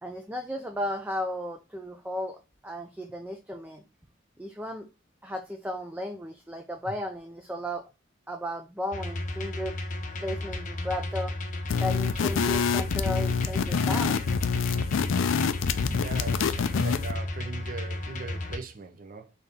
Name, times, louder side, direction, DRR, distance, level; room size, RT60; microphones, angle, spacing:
voice 1, 0.0-3.8 4.4-4.9 5.2-7.8 8.3-9.7 10.2-11.3 11.8-14.2 15.9-16.0, left 1 dB, 10° right, 0.3 m, -34 dB
sound 1, 8.9-18.6, left 1 dB, 40° left, 0.7 m, -34 dB
sound 2, 11.7-17.1, left 6 dB, 70° left, 0.4 m, -26 dB
voice 2, 15.9-19.3, right 4 dB, 45° right, 0.6 m, -40 dB
4.0 x 2.8 x 3.4 m
head